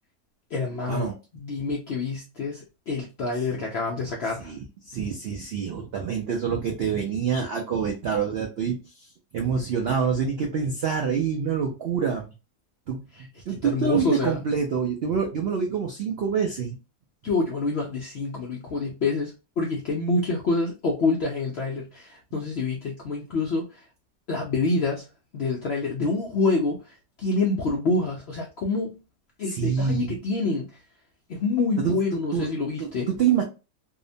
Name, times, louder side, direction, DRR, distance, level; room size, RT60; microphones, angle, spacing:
voice 1, 0.5-1.1 1.3-4.5 13.1-13.3 13.6-14.4 17.2-23.8 24.3-25.1 25.3-29.0 29.4-30.8 31.3-33.1, left 3 dB, 70° left, 0.6 m, -27 dB
voice 2, 4.4-12.3 12.9-13.0 13.5-16.8 29.5-30.2 31.8-32.5 32.8-33.4, right 6 dB, 80° right, 0.5 m, -26 dB
2.8 x 2.1 x 2.5 m
omnidirectional pair, 1.7 m